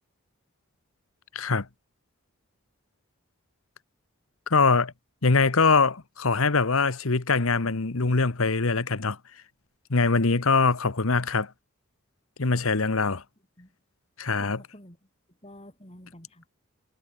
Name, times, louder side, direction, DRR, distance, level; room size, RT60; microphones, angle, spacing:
voice 1, 1.3-1.7 4.5-4.9 5.2-9.2 9.9-11.5 12.4-13.2 14.2-14.6, left 4 dB, 80° left, 1.2 m, -23 dB
voice 2, 12.8-13.2 13.6-13.7 14.4-15.0 15.4-16.4, left 1 dB, 30° left, 6.2 m, -49 dB
head